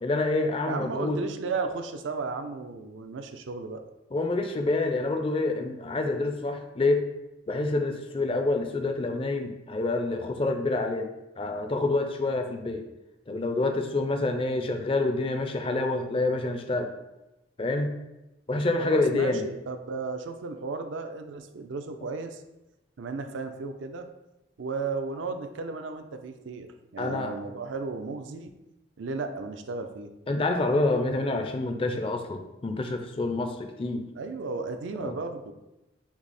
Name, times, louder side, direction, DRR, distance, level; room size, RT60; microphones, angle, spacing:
voice 1, 0.0-1.2 4.1-7.0 7.5-12.8 13.3-16.9 17.6-17.9 18.5-19.5 27.0-27.3 30.3-34.1 35.0-35.2, left 2 dB, 30° left, 6 dB, 0.4 m, -27 dB
voice 2, 0.6-3.8 18.8-22.4 23.0-24.1 24.6-28.5 29.0-30.1 34.2-35.5, right 4 dB, 75° right, 7 dB, 0.4 m, -34 dB
5.9 x 2.0 x 4.1 m, 0.96 s
head